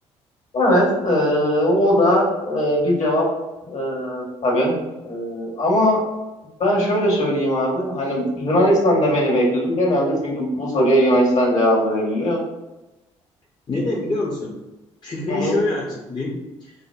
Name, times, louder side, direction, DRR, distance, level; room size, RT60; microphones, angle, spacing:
voice 1, 0.5-3.3 3.6-4.7 5.0-6.0 6.6-12.4 15.3-15.6, equal, 55° left, -2 dB, 1.4 m, -19 dB
voice 2, 13.7-14.6 15.0-16.7, left 2 dB, 30° left, -3 dB, 0.7 m, -25 dB
4.9 x 2.1 x 2.3 m, 1.0 s
hypercardioid pair, 50°, 15 cm